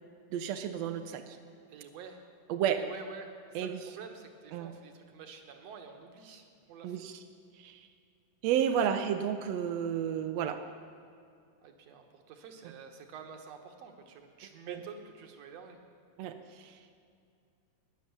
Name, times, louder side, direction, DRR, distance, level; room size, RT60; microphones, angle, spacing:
voice 1, 0.3-1.2 2.5-2.8 3.5-3.8 4.5-4.7 6.8-7.1 7.6-7.8 8.4-10.6 14.7-14.8 16.2-16.7, right 9 dB, 80° right, 7 dB, 1.5 m, -31 dB
voice 2, 1.7-2.2 2.7-7.1 11.6-15.8, right 6 dB, 60° right, 5 dB, 2.1 m, -49 dB
18.0 x 10.5 x 7.1 m, 2.4 s
omnidirectional pair, 3.7 m